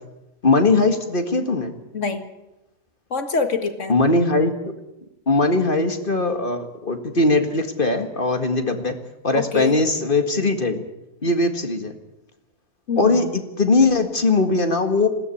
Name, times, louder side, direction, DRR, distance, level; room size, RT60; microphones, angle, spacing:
voice 1, 0.4-1.7 3.9-4.7 5.3-9.0 9.2-10.9 11.2-11.9 13.0-15.1, left 3 dB, 40° left, 7 dB, 2.0 m, -20 dB
voice 2, 1.9-2.2 3.1-4.0 9.3-9.8 12.9-13.3, left 5 dB, 60° left, 8 dB, 2.2 m, -25 dB
20.0 x 16.5 x 8.6 m, 0.95 s
omnidirectional pair, 1.5 m